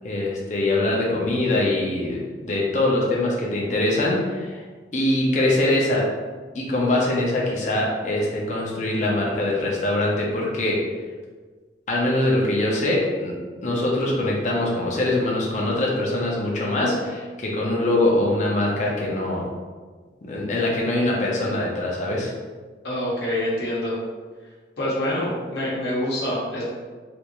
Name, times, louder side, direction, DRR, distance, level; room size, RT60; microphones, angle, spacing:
voice 1, 0.0-4.6 4.9-6.0 6.5-10.8 11.9-13.3 13.6-19.4 20.3-22.3, left 1 dB, 40° left, -4 dB, 0.7 m, -23 dB
voice 2, 22.8-24.0 24.8-26.7, left 1 dB, 65° left, -5 dB, 1.0 m, -26 dB
3.4 x 2.5 x 3.0 m, 1.4 s
head